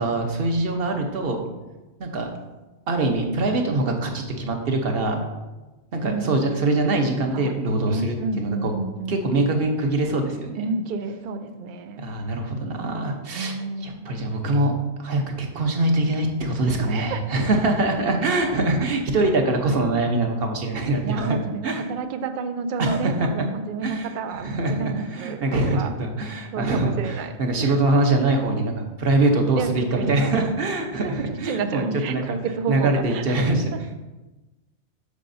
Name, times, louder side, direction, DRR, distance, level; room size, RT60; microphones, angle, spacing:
voice 1, 0.0-1.4 2.0-2.3 2.9-5.2 5.9-8.7 9.1-10.7 12.0-13.6 13.8-14.7 15.0-21.3 21.6-21.8 22.8-23.1 23.8-32.2 32.7-33.7, right 2 dB, 50° right, 3 dB, 1.0 m, -23 dB
voice 2, 6.0-6.5 7.3-9.5 10.6-12.1 13.3-14.2 16.8-17.2 21.0-25.9 26.5-27.3 27.6-28.0 29.6-30.4 31.0-33.4 33.7-33.8, right 4 dB, 85° right, 8 dB, 0.4 m, -30 dB
8.2 x 6.6 x 2.6 m, 1.1 s
omnidirectional pair, 1.4 m